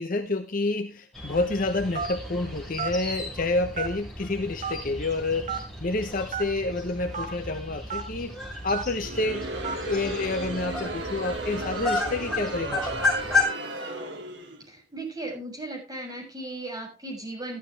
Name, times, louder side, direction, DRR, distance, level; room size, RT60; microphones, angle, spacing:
voice 1, 0.0-8.4 8.6-9.5 9.8-13.1, left 2 dB, 45° left, 7 dB, 0.9 m, -29 dB
sound 1, 1.1-13.4, left 3 dB, 5° left, 5.2 m, -33 dB
Telephone, 1.9-2.3 2.8-3.0 3.7-4.1 4.6-4.7 5.5-5.6 6.3-6.4 7.1-7.3 7.9-8.0 8.7-8.9 9.6-9.8, right 6 dB, 40° right, 3.1 m, -31 dB
Crowd, 8.9-14.7, right 2 dB, 60° right, 2.5 m, -35 dB
voice 2, 14.7-17.6, right 2 dB, 20° right, -1 dB, 7.0 m, -36 dB
14.5 x 12.5 x 3.3 m, 0.29 s
head